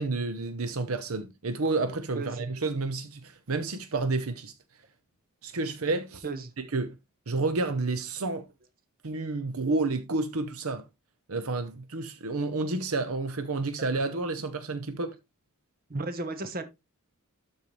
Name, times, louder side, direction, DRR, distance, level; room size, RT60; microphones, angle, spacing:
voice 1, 0.0-4.5 5.4-6.2 6.6-6.9 7.3-8.5 9.0-10.8 11.3-15.1, right 3 dB, 70° right, 0.8 m, -30 dB
voice 2, 15.9-16.6, right 3 dB, 40° right, 1.1 m, -34 dB
12.5 x 4.5 x 3.2 m
head